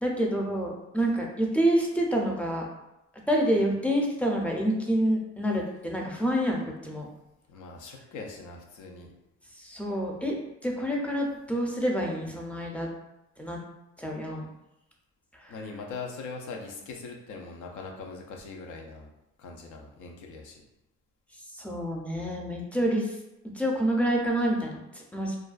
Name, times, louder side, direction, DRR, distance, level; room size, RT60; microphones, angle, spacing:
voice 1, 0.0-2.7 3.3-7.1 9.5-10.4 10.6-12.9 13.4-13.6 14.0-14.5 15.3-15.5 21.5-23.2 23.5-25.4, equal, 5° left, -1 dB, 0.4 m, -27 dB
voice 2, 7.5-9.1 15.5-19.1 19.4-20.6, left 4 dB, 80° left, 1 dB, 0.5 m, -41 dB
2.4 x 2.2 x 2.3 m, 0.90 s
cardioid pair, 90°, 30 cm